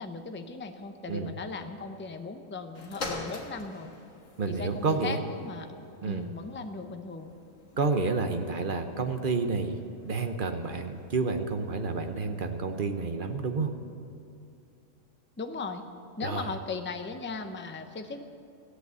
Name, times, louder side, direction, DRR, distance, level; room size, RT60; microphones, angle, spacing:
voice 1, 0.0-3.9 4.4-5.7 6.0-7.3 15.4-15.8 16.2-18.2, left 4 dB, 15° left, 6 dB, 0.5 m, -38 dB
sound 1, 2.7-12.3 13.0-13.1, left 3 dB, 70° left, 1.8 m, -46 dB
voice 2, 4.4-5.2 6.0-6.3 7.8-13.7 16.2-16.5, right 4 dB, 45° right, 6 dB, 0.9 m, -30 dB
16.0 x 8.1 x 8.0 m, 2.6 s
omnidirectional pair, 1.4 m